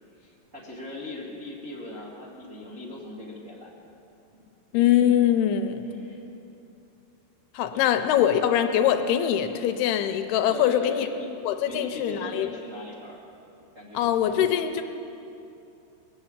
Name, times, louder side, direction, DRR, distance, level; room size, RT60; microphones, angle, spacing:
voice 1, 0.1-3.7 4.3-4.5 5.8-6.2 7.7-7.9 10.5-11.3 11.6-13.2 13.7-14.4, left 1 dB, 30° right, -6 dB, 1.5 m, -39 dB
voice 2, 4.7-5.9 7.5-11.1 11.4-12.5 13.9-14.8, left 10 dB, 85° left, 7 dB, 2.6 m, -23 dB
21.0 x 7.5 x 8.8 m, 2.8 s
omnidirectional pair, 4.7 m